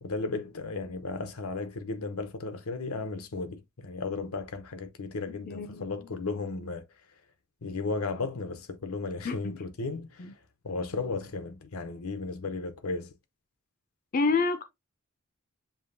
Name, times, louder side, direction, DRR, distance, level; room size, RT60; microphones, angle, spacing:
voice 1, 0.0-6.8 7.6-10.3 10.6-13.1, left 3 dB, 85° left, 0.8 m, -35 dB
voice 2, 5.3-5.9 9.2-9.6 10.2-10.3 14.1-14.6, left 4 dB, 40° left, 0.5 m, -29 dB
7.1 x 2.8 x 2.6 m
head